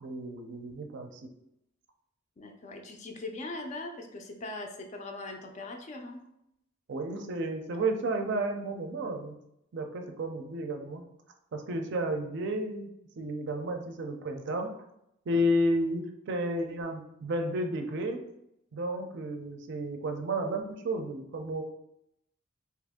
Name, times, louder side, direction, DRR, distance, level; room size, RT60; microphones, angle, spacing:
voice 1, 0.0-1.2 6.9-9.3 9.7-11.0 11.5-12.9 13.2-14.7 15.3-18.2 18.7-21.6, right 1 dB, 60° right, 5 dB, 0.4 m, -32 dB
voice 2, 2.4-6.2, left 2 dB, 35° left, 4 dB, 0.4 m, -40 dB
2.8 x 2.5 x 3.5 m, 0.80 s
head